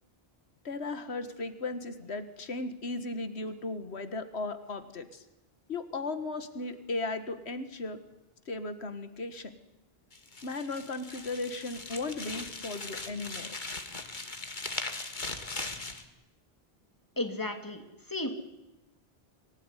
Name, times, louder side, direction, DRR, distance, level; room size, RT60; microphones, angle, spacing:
voice 1, 0.6-5.2 5.7-8.0 8.5-9.6 10.4-13.6, left 3 dB, 85° left, 10 dB, 1.9 m, -36 dB
sound 1, 10.1-16.0, left 3 dB, 50° left, 2.2 m, -39 dB
voice 2, 17.2-18.3, left 2 dB, 20° left, 5 dB, 2.9 m, -34 dB
25.0 x 17.5 x 10.0 m, 0.97 s
omnidirectional pair, 1.1 m